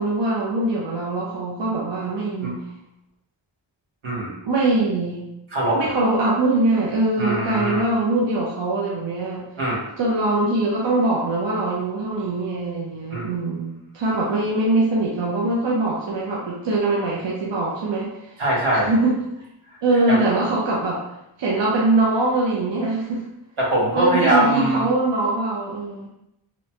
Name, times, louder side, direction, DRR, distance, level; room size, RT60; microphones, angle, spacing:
voice 1, 0.0-2.6 4.4-5.3 5.7-9.5 10.0-18.4 18.8-19.1 19.8-21.0 21.4-23.2 24.0-26.1, right 2 dB, 65° right, -4 dB, 0.6 m, -22 dB
voice 2, 4.0-4.4 5.5-6.0 7.2-7.8 9.6-9.9 13.1-13.3 18.4-18.9 20.1-20.2 23.6-24.9, right 1 dB, 85° right, -5 dB, 1.0 m, -22 dB
2.8 x 2.1 x 2.8 m, 0.84 s
wide cardioid pair, 85°, 47 cm